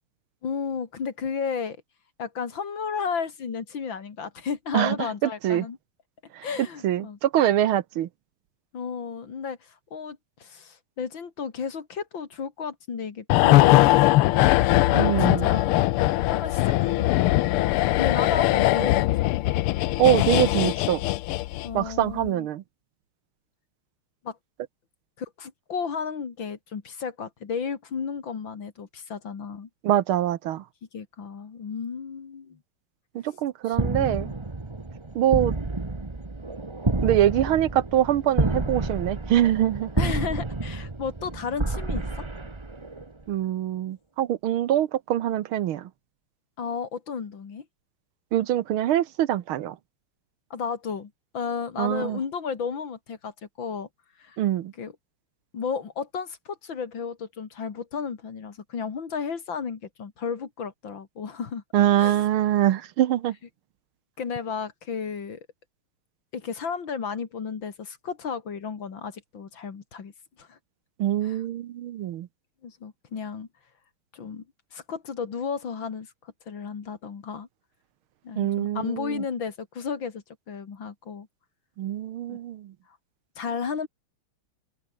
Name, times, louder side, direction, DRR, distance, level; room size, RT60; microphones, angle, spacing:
voice 1, 0.4-1.8 2.2-5.8 6.4-7.2 8.7-14.8 15.2-15.8 16.2-17.4 17.6-19.5 21.6-22.5 24.2-24.4 25.2-29.7 30.9-32.6 33.8-34.3 40.0-42.3 46.6-47.6 50.5-53.9 54.2-54.4 54.8-54.9 55.5-61.6 62.0-62.3 64.2-65.5 66.3-70.1 70.4-70.6 71.2-71.4 72.6-73.5 74.1-74.4 74.7-76.1 76.5-77.5 78.2-81.3 82.3-82.4 83.4-83.9, left 6 dB, 60° left, 2.9 m, -33 dB
voice 2, 5.2-5.6 6.3-6.4 6.8-8.1 14.9-15.5 20.0-21.0 21.7-22.6 29.8-30.6 33.1-34.3 35.1-35.6 37.0-39.9 43.3-45.9 48.3-49.8 51.8-52.2 54.4-54.7 61.7-63.3 71.0-72.3 78.4-79.2 81.8-82.7, right 12 dB, 75° right, 1.7 m, -24 dB
sound 1, 13.3-21.8 22.1-22.3, left 17 dB, 85° left, 1.5 m, -21 dB
sound 2, 33.7-43.2, right 3 dB, 15° right, 1.1 m, -29 dB
omnidirectional pair, 2.4 m